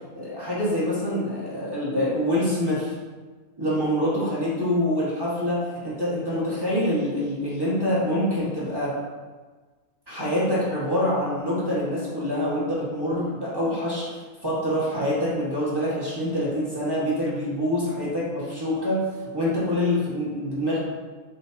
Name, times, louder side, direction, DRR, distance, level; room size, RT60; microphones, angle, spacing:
voice 1, 0.1-2.9 3.6-9.0 10.1-14.1 14.4-19.1 19.3-20.8, left 1 dB, 15° right, -8 dB, 1.8 m, -25 dB
7.8 x 4.5 x 2.9 m, 1.4 s
omnidirectional pair, 1.4 m